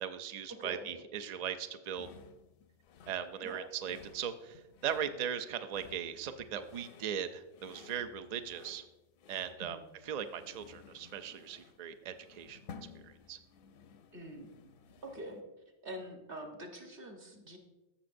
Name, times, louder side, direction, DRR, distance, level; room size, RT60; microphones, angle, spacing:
voice 1, 0.0-2.1 3.1-8.8 9.3-9.8 10.1-12.6 13.0-13.4, right 8 dB, 70° right, 9 dB, 0.3 m, -39 dB
sound 1, 1.9-15.4, left 6 dB, 60° left, 0.6 m, -56 dB
voice 2, 14.1-14.5 15.0-15.4 15.8-17.6, right 1 dB, 50° right, 3 dB, 1.3 m, -45 dB
14.0 x 6.5 x 2.6 m, 1.0 s
omnidirectional pair, 1.3 m